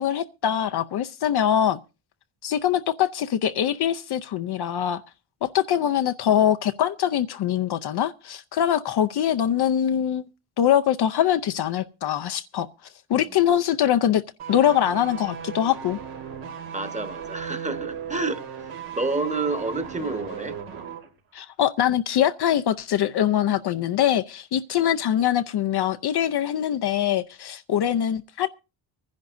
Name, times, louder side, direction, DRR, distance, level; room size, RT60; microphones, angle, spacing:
voice 1, 0.0-1.8 2.4-5.0 5.4-10.2 10.6-12.7 13.1-14.2 14.5-16.0 21.3-28.5, left 10 dB, 50° left, 0.6 m, -23 dB
sound 1, 14.4-21.1 21.3-21.5, right 8 dB, 85° right, 2.9 m, -36 dB
voice 2, 16.7-18.4 18.9-20.6, right 3 dB, 15° right, 1.2 m, -29 dB
24.5 x 10.5 x 2.6 m
cardioid pair, 115°, 49 cm